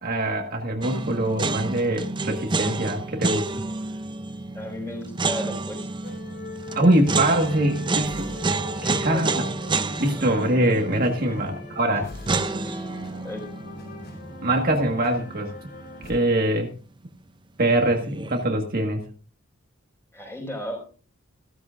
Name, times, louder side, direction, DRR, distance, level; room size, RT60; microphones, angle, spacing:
voice 1, 0.0-3.5 6.7-8.3 8.8-9.5 10.0-12.1 14.4-15.5 16.1-16.7 17.6-19.1, right 1 dB, 45° right, 3 dB, 1.6 m, -23 dB
sound 1, 0.8-16.1 17.9-18.4, right 3 dB, 20° right, 0.5 m, -30 dB
voice 2, 4.5-5.9 8.8-9.2 11.9-12.0 12.6-13.4 20.1-20.8, left 1 dB, 10° left, 2 dB, 5.3 m, -35 dB
sound 2, 6.0-16.1, left 3 dB, 50° left, 4.9 m, -40 dB
16.0 x 13.5 x 2.5 m, 0.38 s
head